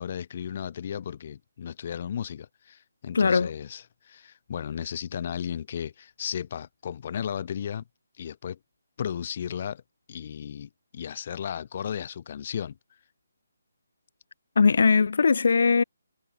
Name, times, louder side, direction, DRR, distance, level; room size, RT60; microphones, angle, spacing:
voice 1, 0.0-7.8 8.2-8.6 9.0-9.8 10.1-12.8, left 8 dB, 40° left, 3.2 m, -35 dB
voice 2, 3.1-3.5 14.6-15.8, left 5 dB, 60° left, 0.5 m, -20 dB
figure-of-eight pair, 145°, 0 cm